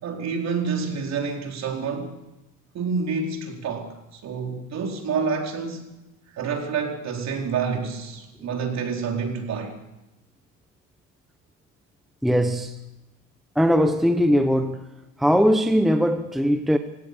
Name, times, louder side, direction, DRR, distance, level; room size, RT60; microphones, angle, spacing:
voice 1, 0.0-2.2 2.7-5.9 6.3-9.7, right 5 dB, 45° right, 4.4 m, -28 dB
voice 2, 12.2-12.7 13.5-14.8 15.2-16.8, equal, ahead, 0.9 m, -20 dB
27.5 x 17.0 x 7.0 m
cardioid pair, 140°, 38 cm